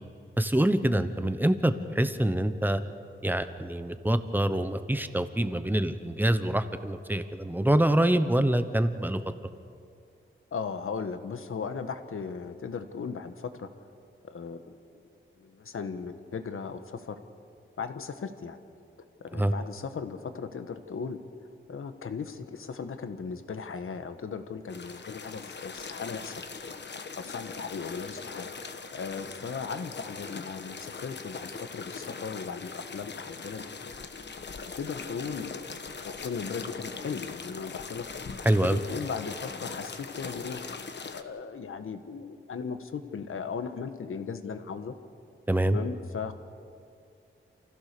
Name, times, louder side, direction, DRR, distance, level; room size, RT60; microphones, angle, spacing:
voice 1, 0.4-2.8 3.2-9.2 19.3-19.5 38.4-38.8 45.5-45.8, right 1 dB, 10° right, 10 dB, 0.9 m, -25 dB
voice 2, 10.5-13.7 14.3-15.1 15.4-17.2 17.8-18.6 19.2-21.2 21.7-26.4 27.2-28.5 28.9-33.6 34.6-38.0 38.6-40.6 41.1-44.9 45.6-46.3, left 5 dB, 85° left, 9 dB, 1.3 m, -37 dB
sound 1, 24.7-41.2, left 5 dB, 60° left, 1.1 m, -41 dB
28.5 x 15.5 x 6.8 m, 2.3 s
wide cardioid pair, 145°, 21 cm